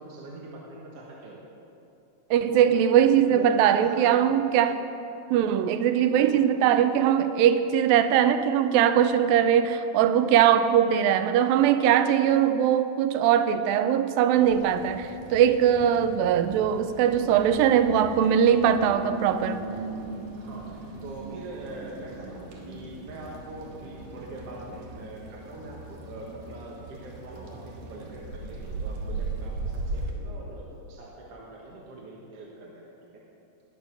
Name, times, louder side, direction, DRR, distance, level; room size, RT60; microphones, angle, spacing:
voice 1, 0.0-1.4 2.5-2.8 3.2-4.6 6.1-6.4 20.4-33.2, right 2 dB, 55° right, -4 dB, 2.0 m, -42 dB
voice 2, 2.3-4.8 5.3-19.6, right 9 dB, 90° right, 10 dB, 2.4 m, -21 dB
sound 1, 14.3-30.1, right 3 dB, 75° right, 3.3 m, -38 dB
19.5 x 6.8 x 6.3 m, 2.8 s
omnidirectional pair, 4.1 m